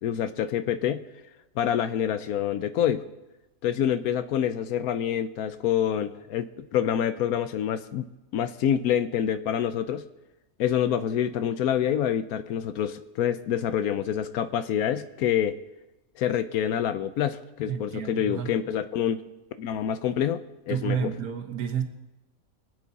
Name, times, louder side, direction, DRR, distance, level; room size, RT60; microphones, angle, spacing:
voice 1, 0.0-1.0 1.6-3.0 3.6-8.1 8.3-10.0 10.6-15.6 16.2-19.2 19.6-21.1, left 9 dB, 80° left, 11 dB, 1.1 m, -27 dB
voice 2, 17.7-18.5 20.7-21.8, right 8 dB, 85° right, 4 dB, 1.6 m, -30 dB
24.0 x 8.5 x 4.1 m, 1.0 s
omnidirectional pair, 1.5 m